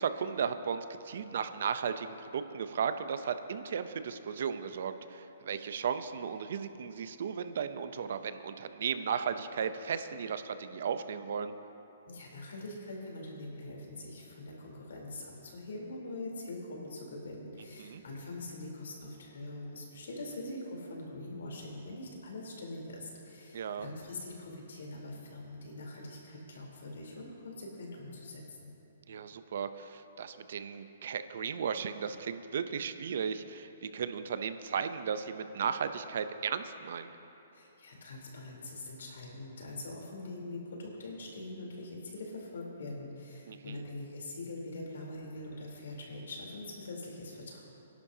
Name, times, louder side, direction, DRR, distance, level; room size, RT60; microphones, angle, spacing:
voice 1, 0.0-11.5 17.8-18.0 23.5-23.9 29.1-37.1 43.5-43.8, right 7 dB, 60° right, 10 dB, 0.6 m, -35 dB
voice 2, 12.1-28.7 37.5-47.6, left 2 dB, 80° left, -2 dB, 3.6 m, -43 dB
26.0 x 11.5 x 2.8 m, 3.0 s
hypercardioid pair, 170°, 0 cm